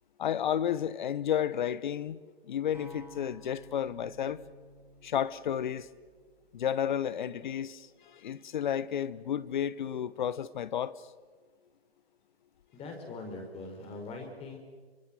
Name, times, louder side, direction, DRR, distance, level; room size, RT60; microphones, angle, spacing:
voice 1, 0.2-2.2 2.5-4.4 5.0-5.9 6.5-10.9, left 9 dB, 50° left, 1.0 m, -32 dB
sound 1, 2.7-6.9, right 1 dB, 5° right, 3.8 m, -53 dB
voice 2, 12.7-14.6, left 3 dB, 20° left, 5.0 m, -42 dB
26.0 x 25.0 x 7.7 m
figure-of-eight pair, 130°, 31 cm